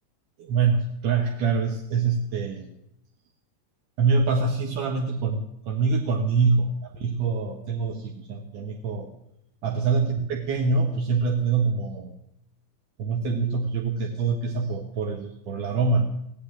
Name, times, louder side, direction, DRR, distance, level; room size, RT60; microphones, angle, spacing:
voice 1, 0.4-2.7 4.0-9.1 9.6-12.1 13.0-16.1, right 4 dB, 45° right, 3 dB, 1.6 m, -25 dB
16.5 x 9.7 x 7.4 m, 0.81 s
figure-of-eight pair, 90°, 0 cm